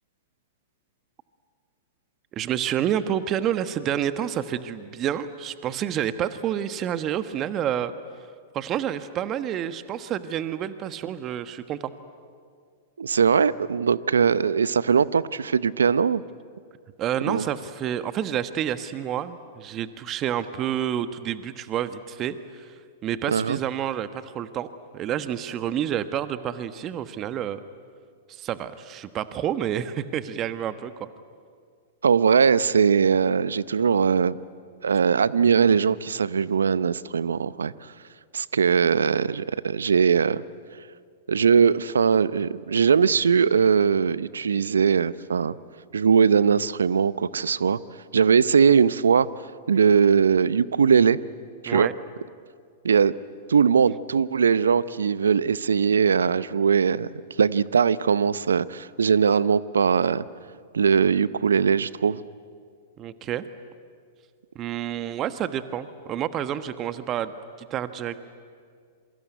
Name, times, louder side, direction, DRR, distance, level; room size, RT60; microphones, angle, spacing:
voice 1, 2.3-7.9 8.5-11.9 17.0-22.7 23.0-24.7 24.9-27.6 28.3-31.1 51.7-51.9 63.0-63.4 64.5-68.2, right 10 dB, 35° right, 12 dB, 1.2 m, -29 dB
voice 2, 13.0-16.2 17.3-17.4 23.3-23.6 32.0-34.4 34.8-37.7 38.3-40.4 41.3-45.5 45.9-47.8 48.1-49.3 49.7-51.2 51.6-51.9 52.8-53.1 53.5-57.1 57.4-60.2 60.7-62.2, right 6 dB, 80° right, 18 dB, 0.7 m, -20 dB
27.0 x 23.5 x 9.3 m, 2.1 s
hypercardioid pair, 105°, 0 cm